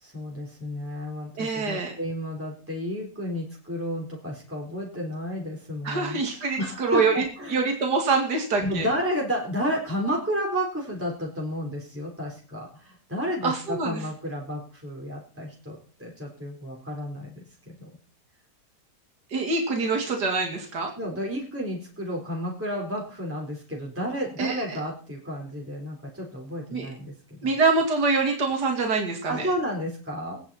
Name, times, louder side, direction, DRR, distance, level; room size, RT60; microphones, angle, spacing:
voice 1, 0.0-6.2 6.6-7.7 8.6-17.9 21.0-27.6 29.3-30.4, equal, 5° right, -2 dB, 4.1 m, -31 dB
voice 2, 1.4-1.9 5.8-7.1 7.5-8.9 13.4-14.0 19.3-20.9 24.4-24.8 26.7-26.9 27.4-29.5, right 4 dB, 70° right, 2 dB, 3.0 m, -25 dB
20.0 x 11.5 x 4.3 m, 0.41 s
omnidirectional pair, 1.8 m